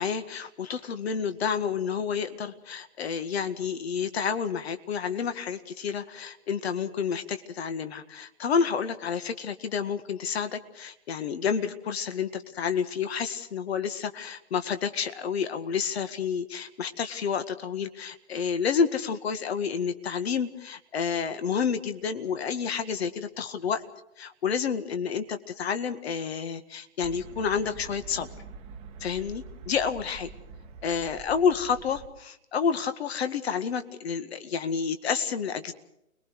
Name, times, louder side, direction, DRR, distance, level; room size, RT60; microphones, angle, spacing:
voice 1, 0.0-23.8 24.2-28.3 29.0-30.3 30.8-35.7, left 6 dB, 45° left, 10 dB, 1.9 m, -29 dB
sound 1, 27.0-32.1, right 4 dB, 15° right, 1.4 m, -45 dB
29.5 x 21.0 x 4.9 m, 0.79 s
hypercardioid pair, 145°, 42 cm